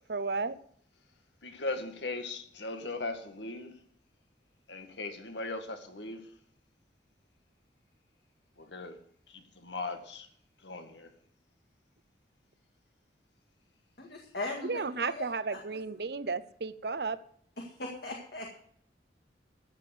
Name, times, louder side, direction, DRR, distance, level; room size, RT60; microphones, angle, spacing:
voice 1, 0.1-0.6 14.6-17.2, right 4 dB, 65° right, 0.7 m, -33 dB
voice 2, 1.4-3.8 4.7-6.3 8.6-9.0 9.3-10.3 10.6-11.1, left 2 dB, 80° left, 1.8 m, -38 dB
voice 3, 14.0-15.3 15.7-15.8 17.6-18.5, left 2 dB, 65° left, 2.0 m, -39 dB
14.5 x 6.7 x 7.9 m
head